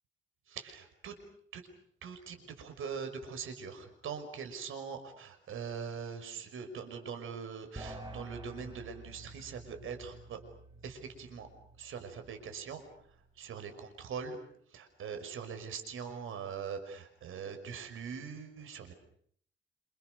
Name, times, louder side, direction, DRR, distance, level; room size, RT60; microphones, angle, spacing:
voice 1, 0.5-1.2 1.5-1.6 2.0-10.4 10.8-11.5 11.8-12.8 13.4-14.4 14.7-18.9, right 6 dB, 75° right, 7 dB, 5.7 m, -42 dB
sound 1, 7.8-13.3, right 2 dB, 20° right, 5.7 m, -50 dB
28.0 x 27.5 x 6.7 m, 0.63 s
wide cardioid pair, 145°, 21 cm